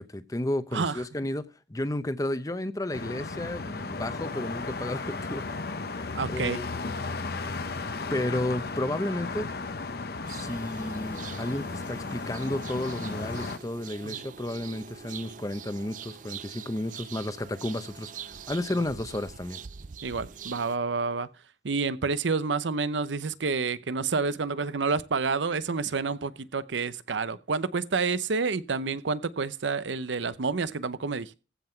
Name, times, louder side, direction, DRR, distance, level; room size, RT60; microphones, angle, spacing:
voice 1, 0.0-1.4 1.7-5.4 5.8-6.9 8.1-9.5 10.3-19.6, left 1 dB, 20° left, 0.8 m, -32 dB
voice 2, 0.7-1.0 6.1-6.6 14.0-14.3 18.7-18.8 20.0-21.3 21.6-31.3, right 4 dB, 90° right, 0.7 m, -29 dB
sound 1, 2.9-13.6, left 3 dB, 55° left, 0.8 m, -35 dB
sound 2, 10.3-20.8, right 7 dB, 45° right, 0.5 m, -44 dB
15.5 x 5.7 x 4.5 m
head